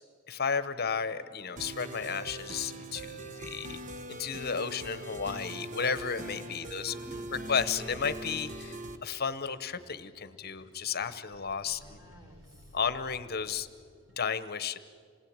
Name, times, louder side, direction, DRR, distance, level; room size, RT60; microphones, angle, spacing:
voice 1, 0.3-3.8 4.1-6.9 7.5-12.0 12.7-13.7 14.2-14.8, left 6 dB, 50° left, 13 dB, 1.1 m, -33 dB
sound 1, 1.0-14.2, equal, 70° right, 7.2 m, -56 dB
sound 2, 1.6-9.0, right 2 dB, 40° right, 1.1 m, -42 dB
voice 2, 6.5-7.5 11.6-12.8, equal, 15° right, -1 dB, 4.2 m, -53 dB
27.5 x 19.5 x 8.9 m, 2.1 s
head